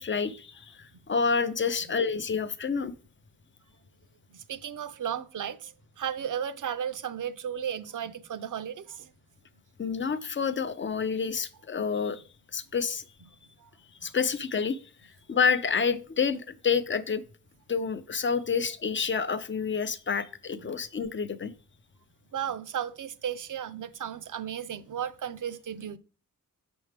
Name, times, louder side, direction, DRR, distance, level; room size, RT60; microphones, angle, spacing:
voice 1, 0.0-2.9 9.8-12.2 12.5-13.0 14.0-14.8 15.3-17.2 17.7-21.5, left 5 dB, 35° left, 0.4 m, -28 dB
voice 2, 4.3-9.1 13.6-13.7 14.0-14.1 20.5-20.7 22.3-26.0, right 9 dB, 65° right, 0.5 m, -35 dB
7.1 x 6.1 x 3.4 m
wide cardioid pair, 165°, 34 cm